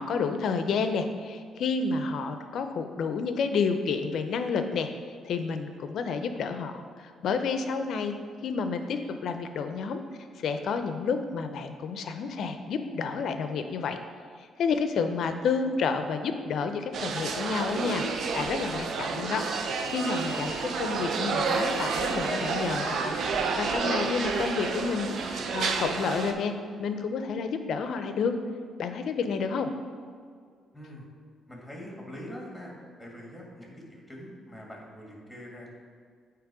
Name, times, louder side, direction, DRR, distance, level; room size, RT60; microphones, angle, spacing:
voice 1, 0.0-4.9 5.2-8.2 8.4-10.0 10.4-14.0 14.6-26.5 26.8-28.3 28.8-29.7, left 5 dB, 70° left, 8 dB, 0.5 m, -30 dB
sound 1, 16.9-26.3, right 4 dB, 65° right, 0.6 m, -30 dB
voice 2, 30.7-31.1 31.4-32.7 33.0-35.8, equal, 5° left, -2 dB, 1.7 m, -43 dB
8.8 x 3.0 x 4.8 m, 2.1 s
cardioid pair, 90°, 0 cm